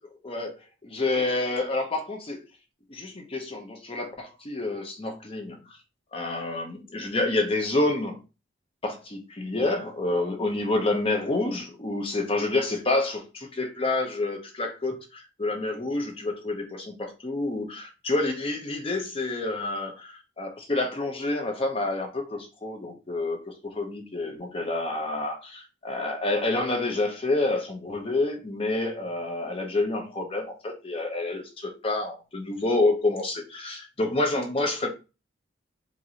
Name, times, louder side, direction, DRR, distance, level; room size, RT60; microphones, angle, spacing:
voice 1, 0.2-0.5 0.8-2.4 2.9-5.6 6.1-8.2 8.8-34.9, left 2 dB, 30° left, 4 dB, 0.8 m, -28 dB
4.5 x 2.6 x 2.8 m, 0.30 s
head